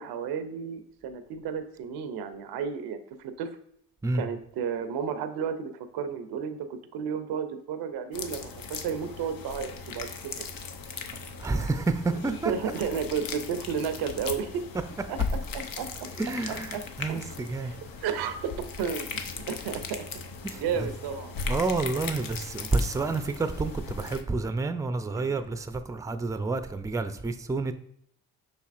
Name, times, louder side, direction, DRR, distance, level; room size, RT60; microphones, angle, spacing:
voice 1, 0.0-3.6 4.1-10.4 12.2-14.6 15.1-15.2 15.5-15.9 16.5-16.8 17.1-17.2 17.6-17.8 18.0-18.5 18.8-20.1 20.5-21.3 25.2-25.4, right 7 dB, 90° right, 10 dB, 0.5 m, -32 dB
sound 1, 8.1-24.2, left 4 dB, 65° left, 0.6 m, -38 dB
voice 2, 11.4-12.5 16.2-17.7 20.4-20.9 21.5-27.7, right 3 dB, 10° right, 10 dB, 0.4 m, -29 dB
5.3 x 4.1 x 2.4 m, 0.69 s
supercardioid pair, 45°, 37 cm